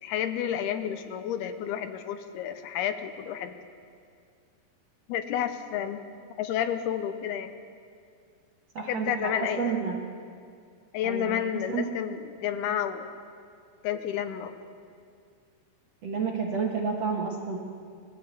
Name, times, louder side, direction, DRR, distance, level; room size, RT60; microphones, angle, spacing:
voice 1, 0.0-3.6 5.1-6.0 6.4-7.5 8.9-9.8 10.9-13.1 13.8-14.5, left 9 dB, 80° left, 9 dB, 2.8 m, -30 dB
voice 2, 8.7-9.3 9.6-10.0 11.0-11.4 11.7-11.9 16.0-17.6, right 5 dB, 50° right, -1 dB, 2.2 m, -30 dB
21.5 x 14.5 x 8.4 m, 2.3 s
omnidirectional pair, 4.7 m